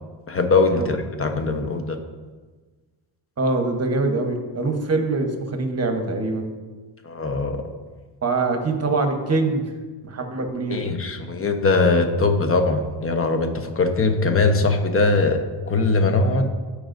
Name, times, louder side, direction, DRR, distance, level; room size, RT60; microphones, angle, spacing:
voice 1, 0.3-2.0 7.0-7.6 10.7-16.5, left 3 dB, 30° left, 5 dB, 1.0 m, -21 dB
voice 2, 3.4-6.5 8.2-9.7 10.1-10.8, right 3 dB, 35° right, 5 dB, 1.1 m, -23 dB
14.5 x 4.9 x 2.6 m, 1.3 s
cardioid pair, 95°, 45 cm